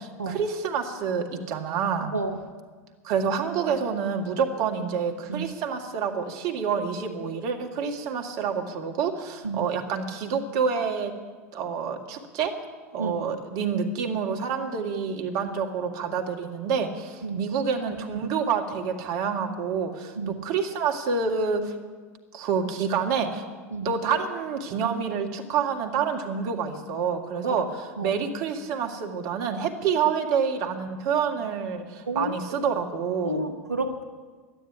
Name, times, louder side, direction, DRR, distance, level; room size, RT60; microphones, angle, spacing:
voice 1, 0.0-2.1 3.0-11.1 11.5-12.6 12.9-21.7 22.3-23.4 23.8-33.5, right 6 dB, 50° right, 4 dB, 1.8 m, -28 dB
voice 2, 33.2-34.0, right 2 dB, 90° right, 7 dB, 0.9 m, -30 dB
12.5 x 9.8 x 9.8 m, 1.5 s
figure-of-eight pair, 80°, 8 cm